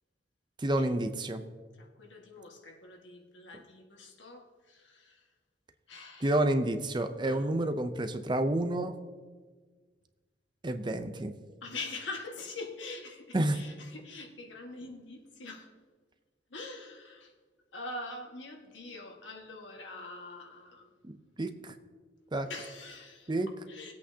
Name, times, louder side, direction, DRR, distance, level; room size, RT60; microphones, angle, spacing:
voice 1, 0.6-1.4 3.5-3.6 6.2-8.9 10.6-11.3 13.3-13.6 21.0-21.7 22.3-22.5 23.3-23.5, right 1 dB, 25° right, 9 dB, 0.6 m, -29 dB
voice 2, 1.8-5.2 5.9-6.3 7.2-7.5 11.6-15.7 16.5-17.3 17.7-20.9 22.4-23.3 23.7-23.9, left 3 dB, 80° left, 1 dB, 1.7 m, -44 dB
21.0 x 8.2 x 2.8 m, 1.4 s
head